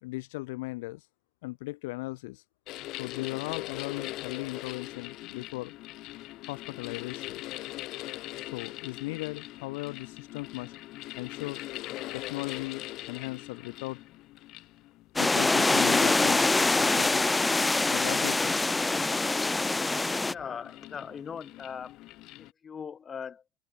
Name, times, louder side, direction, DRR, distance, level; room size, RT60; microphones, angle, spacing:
voice 1, 0.0-1.1 1.4-2.4 3.0-5.7 6.4-7.4 8.4-10.7 11.2-11.6 12.1-14.0 15.2-16.4 16.8-17.3 17.9-18.6, left 22 dB, 85° left, 1.4 m, -37 dB
sound 1, 2.7-22.5, left 18 dB, 60° left, 5.3 m, -42 dB
sound 2, 15.2-20.3, left 3 dB, 15° left, 1.3 m, -24 dB
voice 2, 20.1-22.0 22.4-23.4, left 7 dB, 30° left, 5.8 m, -40 dB
open air
supercardioid pair, 105°, 0 cm